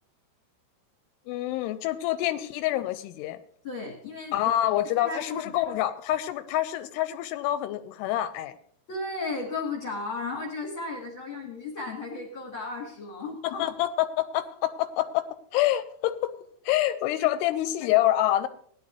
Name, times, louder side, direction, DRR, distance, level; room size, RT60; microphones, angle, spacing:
voice 1, 1.3-3.4 4.3-8.5 13.4-15.3 15.5-16.3 16.7-18.5, left 13 dB, 85° left, 12 dB, 2.7 m, -26 dB
voice 2, 3.6-4.5 5.0-5.4 8.9-13.6 17.2-17.3, left 3 dB, 45° left, -1 dB, 1.9 m, -34 dB
17.0 x 10.5 x 3.3 m, 0.62 s
omnidirectional pair, 4.8 m